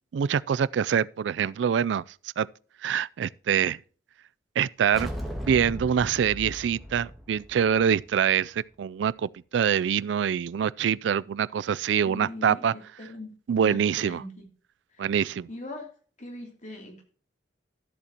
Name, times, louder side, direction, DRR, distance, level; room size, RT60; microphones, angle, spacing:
voice 1, 0.1-2.0 2.4-2.5 2.8-3.8 4.6-5.1 5.5-12.7 13.5-14.2 15.0-15.5, right 8 dB, 80° right, 0.3 m, -25 dB
sound 1, 4.9-8.4, equal, ahead, 1.9 m, -37 dB
voice 2, 12.0-14.5 14.9-15.1 15.5-15.9 16.2-17.0, left 2 dB, 45° left, 2.8 m, -41 dB
13.5 x 8.1 x 2.9 m
head